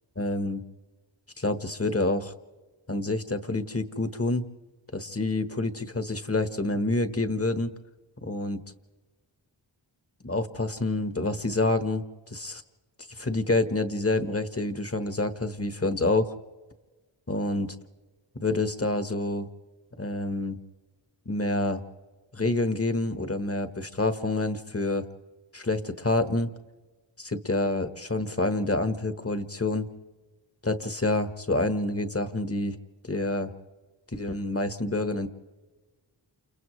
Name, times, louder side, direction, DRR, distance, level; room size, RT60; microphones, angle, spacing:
voice 1, 0.2-0.6 1.4-2.3 2.9-4.5 4.9-7.7 8.2-8.6 10.2-12.6 13.1-16.2 17.3-17.7 18.4-19.5 20.0-20.6 21.2-21.8 22.3-25.0 25.5-26.5 27.2-29.9 30.6-32.8 33.0-33.5 34.1-35.3, left 2 dB, 30° left, 9 dB, 1.3 m, -27 dB
29.5 x 29.0 x 3.2 m, 1.3 s
wide cardioid pair, 55°, 45 cm